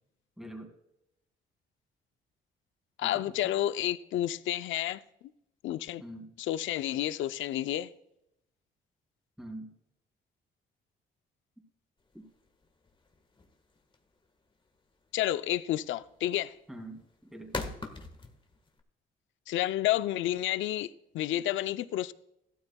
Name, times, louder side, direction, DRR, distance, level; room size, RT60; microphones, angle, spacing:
voice 1, 0.4-0.7 3.0-3.5 6.0-6.3 9.4-9.7 12.1-12.3 16.7-17.0 17.3-17.7, right 1 dB, ahead, 2.7 m, -44 dB
voice 2, 3.0-5.0 5.6-6.0 6.4-7.9 15.1-16.5 19.5-22.1, left 13 dB, 80° left, 0.5 m, -30 dB
sound 1, 12.0-18.8, left 3 dB, 25° left, 1.5 m, -42 dB
15.0 x 13.0 x 2.3 m
cardioid pair, 90°, 20 cm